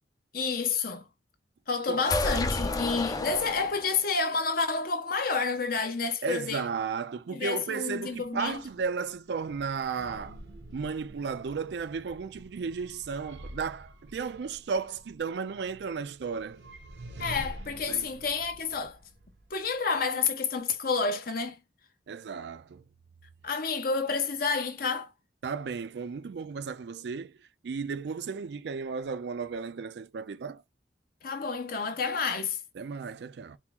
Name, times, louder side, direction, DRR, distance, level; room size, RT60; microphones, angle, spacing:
voice 1, 0.3-1.0 1.7-6.7 7.3-8.6 17.2-19.0 19.5-21.6 23.4-25.1 31.2-32.6, left 4 dB, 55° left, 0.8 m, -29 dB
sound 1, 2.0-4.1, left 2 dB, 20° left, 0.4 m, -31 dB
voice 2, 6.2-10.4 10.7-16.6 17.9-18.1 22.1-22.8 25.4-27.3 27.6-30.6 32.8-33.6, right 5 dB, 65° right, 0.4 m, -34 dB
sound 2, 7.9-20.1, right 1 dB, 80° right, 0.8 m, -48 dB
4.3 x 2.0 x 3.5 m
head